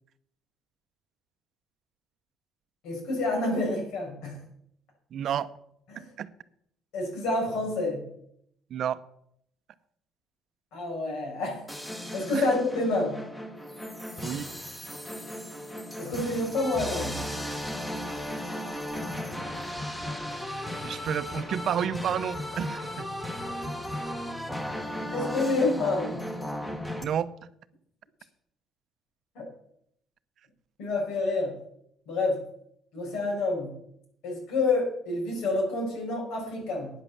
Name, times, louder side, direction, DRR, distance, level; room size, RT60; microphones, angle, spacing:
voice 1, 2.8-4.4 5.9-6.1 6.9-8.0 10.7-11.7 12.1-13.2 16.0-17.2 25.1-26.2 29.3-29.4 30.8-31.5 32.1-32.4 32.9-33.7 34.2-36.9, left 2 dB, 75° left, -1 dB, 6.7 m, -28 dB
voice 2, 5.1-5.5 6.2-6.3 8.7-9.0 12.3-12.5 14.2-14.5 19.1-19.2 20.8-23.1 27.0-27.3, right 9 dB, 50° right, 13 dB, 0.7 m, -30 dB
sound 1, 11.7-27.0, left 1 dB, 5° left, 1.3 m, -35 dB
11.0 x 9.7 x 7.3 m, 0.72 s
cardioid pair, 155°, 0 cm